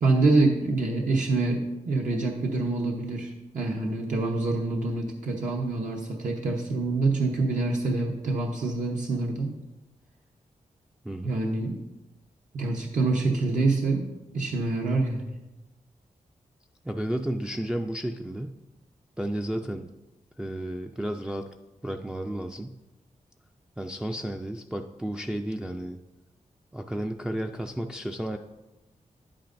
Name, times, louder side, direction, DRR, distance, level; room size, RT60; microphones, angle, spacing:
voice 1, 0.0-9.5 11.2-11.8 12.5-14.1 14.3-15.3, right 3 dB, 70° right, -1 dB, 0.9 m, -26 dB
voice 2, 11.0-11.4 16.8-18.5 19.2-19.9 20.4-21.5 21.8-22.7 23.8-26.0 26.7-28.4, right 1 dB, 5° right, 3 dB, 0.3 m, -32 dB
9.7 x 8.8 x 2.6 m, 1.0 s
wide cardioid pair, 145°, 14 cm